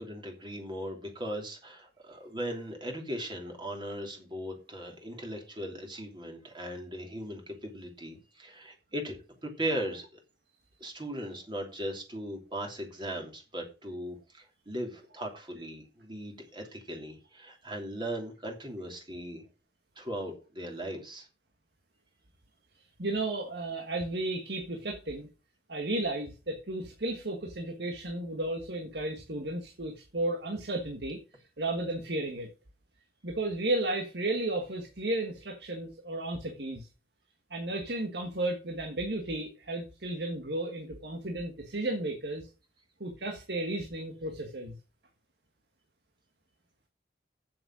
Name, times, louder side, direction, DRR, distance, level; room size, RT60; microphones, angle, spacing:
voice 1, 0.0-10.1 10.8-19.4 20.0-21.3, right 1 dB, 25° right, 2 dB, 3.0 m, -38 dB
voice 2, 23.0-25.3 25.7-31.2 31.6-32.5 33.2-36.9 37.5-42.5 43.0-44.8, right 2 dB, 70° right, 4 dB, 1.6 m, -33 dB
8.1 x 7.6 x 6.2 m, 0.33 s
head